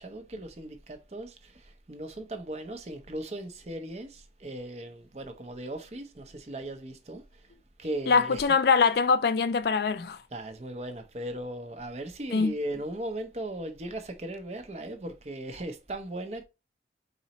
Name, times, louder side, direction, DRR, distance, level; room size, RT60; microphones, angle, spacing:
voice 1, 0.0-7.5 7.8-8.4 10.3-16.4, right 1 dB, 35° right, 0.6 m, -38 dB
voice 2, 8.1-10.2 12.3-12.5, left 5 dB, 60° left, 0.4 m, -23 dB
4.0 x 4.0 x 2.9 m
head